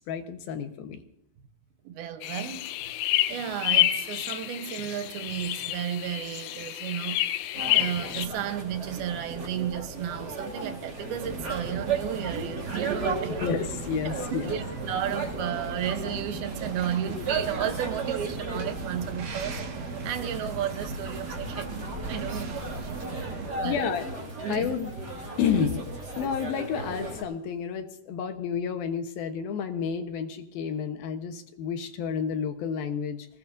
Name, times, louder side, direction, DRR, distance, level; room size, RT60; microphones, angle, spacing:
voice 1, 0.1-1.0 13.4-14.6 17.0-17.1 23.6-24.1 24.5-24.9 25.4-25.8 26.2-33.3, left 7 dB, 70° left, 2.9 m, -30 dB
voice 2, 1.8-7.2 7.7-13.4 14.3-22.9 23.2-23.9 24.4-24.8, right 10 dB, 75° right, 2.9 m, -33 dB
sound 1, 2.2-8.3, left 15 dB, 90° left, 2.8 m, -28 dB
sound 2, 7.5-27.2, right 3 dB, 25° right, 3.8 m, -36 dB
sound 3, 11.2-23.5, right 3 dB, 60° right, 3.0 m, -38 dB
25.0 x 19.0 x 2.7 m
omnidirectional pair, 4.5 m